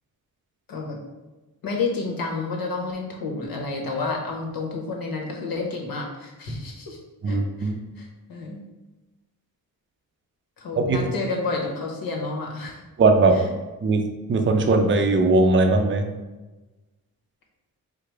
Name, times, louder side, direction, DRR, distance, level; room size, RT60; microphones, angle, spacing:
voice 1, 1.6-7.0 7.3-8.6 10.6-12.8 13.3-13.5, left 3 dB, 70° left, 0 dB, 1.1 m, -30 dB
voice 2, 7.2-7.8 10.9-11.0 13.0-13.4 13.8-14.0 14.3-16.1, right 3 dB, 35° right, 5 dB, 0.5 m, -19 dB
4.7 x 2.1 x 4.6 m, 1.1 s
cardioid pair, 100°, 36 cm